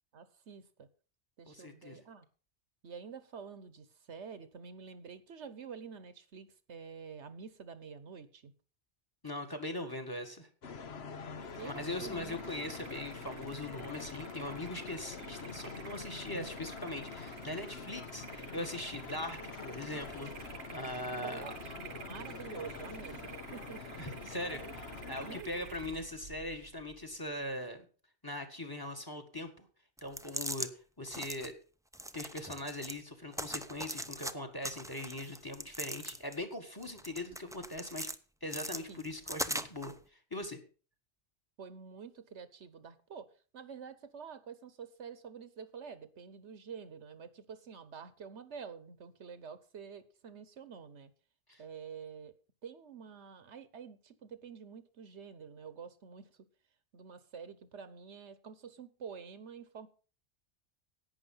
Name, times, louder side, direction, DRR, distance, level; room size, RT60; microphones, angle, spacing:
voice 1, 0.1-0.9 1.4-2.3 2.8-8.5 11.6-12.4 21.2-23.8 25.2-25.7 38.6-39.0 41.6-43.3 43.5-51.1 51.6-52.3 52.6-56.4 56.9-59.9, right 6 dB, 75° right, 13 dB, 1.3 m, -48 dB
voice 2, 1.5-2.0 9.2-10.5 11.7-21.5 23.9-27.9 28.2-29.7 30.0-30.7 31.0-31.5 32.1-38.1 38.4-40.6 51.5-51.6, left 1 dB, 20° left, 8 dB, 1.8 m, -41 dB
sound 1, 10.6-25.4, left 5 dB, 65° left, 1.3 m, -45 dB
sound 2, 11.4-27.7, right 8 dB, 55° right, 0.8 m, -51 dB
sound 3, 30.0-30.7 31.1-31.5 31.9-33.0 33.3-34.3 34.6-36.4 36.8-38.2 38.5-39.9, right 1 dB, 5° right, 0.4 m, -40 dB
11.0 x 9.0 x 5.5 m, 0.37 s
omnidirectional pair, 1.2 m